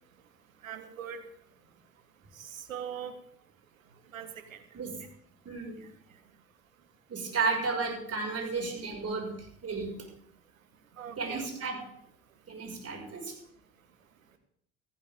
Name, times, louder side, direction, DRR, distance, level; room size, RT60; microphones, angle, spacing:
voice 1, 0.6-1.3 2.3-3.1 4.1-4.6 5.8-5.9 10.9-11.8, right 8 dB, 85° right, 9 dB, 1.5 m, -41 dB
voice 2, 5.4-5.8 7.1-10.0 11.2-11.8 12.5-13.4, right 4 dB, 35° right, 1 dB, 6.1 m, -33 dB
16.0 x 15.0 x 3.8 m, 0.70 s
hypercardioid pair, 60°, 40 cm